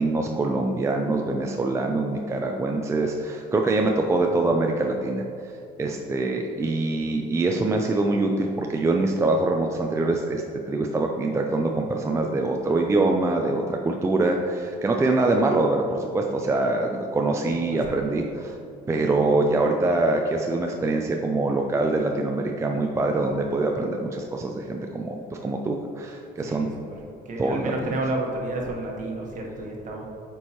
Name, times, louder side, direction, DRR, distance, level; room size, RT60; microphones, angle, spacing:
voice 1, 0.0-5.2 5.8-18.6 18.9-25.2 25.4-26.7 27.4-27.9, right 2 dB, 15° right, 2 dB, 0.4 m, -24 dB
voice 2, 26.4-27.0 27.2-30.1, right 2 dB, 50° right, -1 dB, 1.3 m, -31 dB
7.7 x 4.5 x 3.0 m, 2.6 s
cardioid pair, 110°, 17 cm